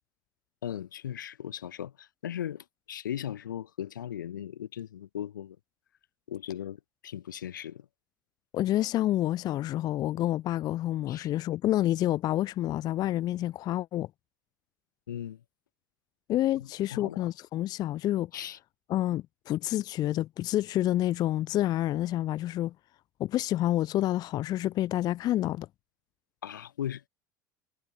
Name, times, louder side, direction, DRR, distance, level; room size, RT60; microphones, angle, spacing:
voice 1, 0.6-5.6 6.3-7.9 11.1-11.3 15.1-15.4 16.9-17.3 18.3-18.6 26.4-27.1, left 10 dB, 80° left, 0.9 m, -38 dB
voice 2, 8.5-14.1 16.3-18.3 18.9-22.7 23.2-25.7, left 14 dB, 40° left, 0.4 m, -28 dB
figure-of-eight pair, 70°, 10 cm